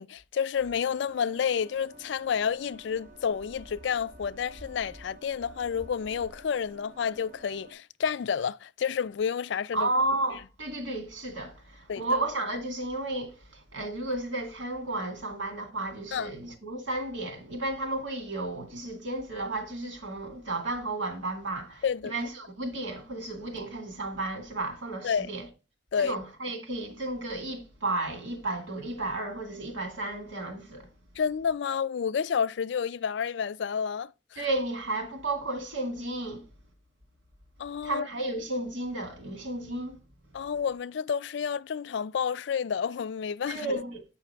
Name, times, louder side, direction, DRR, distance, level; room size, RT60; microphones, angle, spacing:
voice 1, 0.0-9.9 11.9-12.0 16.1-16.3 21.8-22.1 25.0-25.3 25.9-26.2 31.2-34.4 37.6-38.1 40.3-43.8, left 7 dB, 70° left, 0.4 m, -30 dB
sound 1, 0.6-7.7, right 1 dB, 45° right, 2.9 m, -50 dB
voice 2, 9.7-13.4 13.7-25.5 26.0-30.8 34.4-36.4 37.8-40.0 43.5-44.0, right 2 dB, 90° right, 2.3 m, -33 dB
7.9 x 5.7 x 4.6 m
head